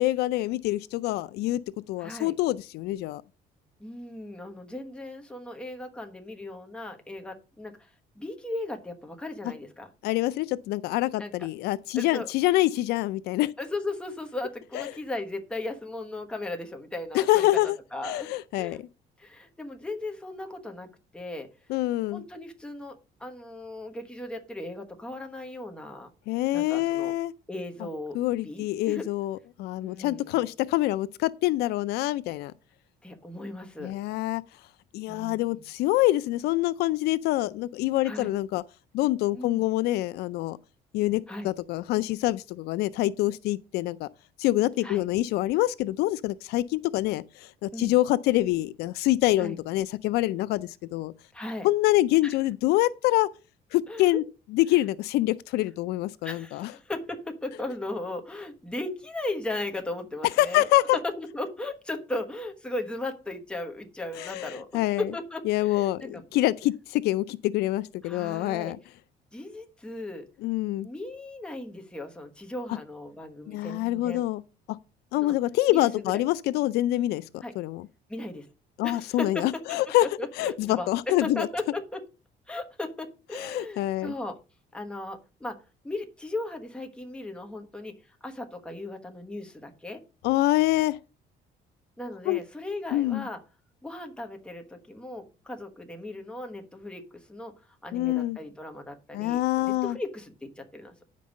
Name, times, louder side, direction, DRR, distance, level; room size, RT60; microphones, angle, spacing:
voice 1, 0.0-1.6 1.9-3.2 10.0-13.5 14.7-14.9 17.1-17.8 18.0-18.9 21.7-22.2 26.3-27.3 28.1-32.5 33.8-34.4 34.9-38.6 38.9-40.6 40.9-44.1 44.4-51.1 51.6-53.3 53.7-54.2 54.5-56.7 60.4-61.0 64.2-65.1 65.5-68.8 70.4-70.9 73.5-74.4 75.1-77.2 77.6-77.8 78.8-80.1 80.4-81.5 83.3-84.1 90.2-91.0 92.3-92.4 92.9-93.3 97.9-98.4 99.1-100.0, left 16 dB, 75° left, 0.4 m, -26 dB
voice 2, 2.0-2.3 3.8-7.9 8.2-9.9 11.2-11.5 11.9-12.3 13.6-17.5 17.9-18.3 18.6-18.8 19.2-20.9 21.1-21.5 22.1-26.1 26.5-27.1 27.5-28.2 28.4-29.1 29.8-30.4 33.0-33.9 35.1-35.7 38.0-38.3 39.3-39.6 41.3-41.5 44.8-45.0 47.7-48.0 49.4-49.6 51.3-51.7 52.2-52.4 53.9-54.2 56.2-60.7 60.9-66.3 68.0-68.7 69.3-70.2 70.8-74.2 75.2-75.3 75.7-75.9 77.4-77.5 78.1-78.5 78.8-82.0 82.5-84.4 84.7-85.6 85.8-90.0 92.0-93.4 93.8-97.5 97.8-100.9, left 2 dB, 5° left, 1.2 m, -37 dB
9.4 x 5.3 x 5.2 m
cardioid pair, 160°, 17 cm